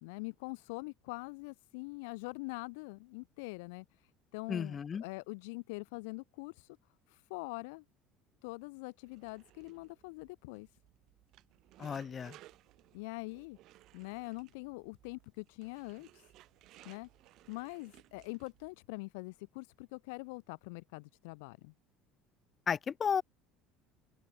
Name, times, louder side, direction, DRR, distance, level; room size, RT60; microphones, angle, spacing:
voice 1, 0.0-3.8 4.3-6.8 7.1-7.8 8.4-10.7 12.9-13.6 13.9-16.3 16.8-17.1 17.5-21.7, left 28 dB, 85° left, 1.0 m, -44 dB
voice 2, 4.5-5.0 11.8-12.4 22.7-23.2, left 7 dB, 30° left, 0.6 m, -33 dB
sound 1, 9.0-18.7, right 16 dB, 60° right, 2.4 m, -61 dB
open air
supercardioid pair, 110°, 0 cm